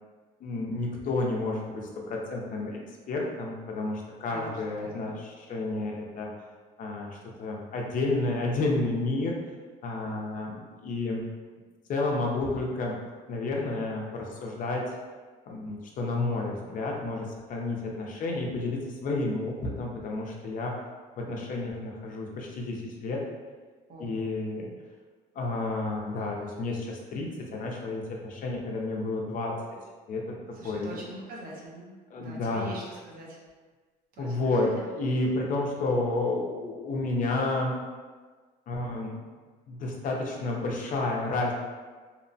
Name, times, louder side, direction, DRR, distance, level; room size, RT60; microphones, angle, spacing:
voice 1, 0.4-2.8 3.1-6.3 6.8-9.4 9.8-11.2 11.9-12.9 13.3-14.8 15.5-20.7 21.2-23.2 24.0-24.7 25.4-29.5 30.1-30.2 30.6-31.0 32.1-32.7 34.2-37.8 38.7-39.1 39.7-41.5, left 2 dB, 50° left, -1 dB, 0.5 m, -30 dB
voice 2, 4.3-5.1 23.9-24.3 30.5-31.9 32.2-33.4 34.1-34.7, right 1 dB, 60° right, -4 dB, 0.7 m, -43 dB
2.8 x 2.0 x 2.6 m, 1.4 s
cardioid pair, 110°, 17 cm